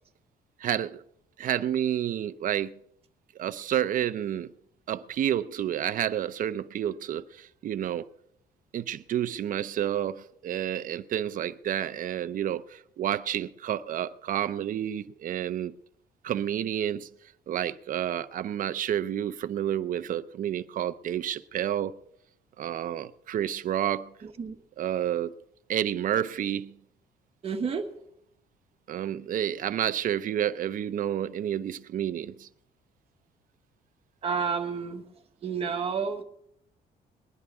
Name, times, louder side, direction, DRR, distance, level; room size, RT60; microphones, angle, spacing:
voice 1, 0.6-1.0 1.4-2.7 3.4-4.5 4.9-8.1 8.7-15.7 16.2-17.1 17.5-21.9 22.6-24.1 24.8-25.4 25.7-26.7 28.9-32.5, right 10 dB, 50° right, 0.6 m, -30 dB
voice 2, 27.4-27.8 34.2-35.0 35.4-36.2, right 5 dB, 35° right, 1.3 m, -30 dB
21.0 x 10.5 x 3.6 m
cardioid pair, 140°, 17 cm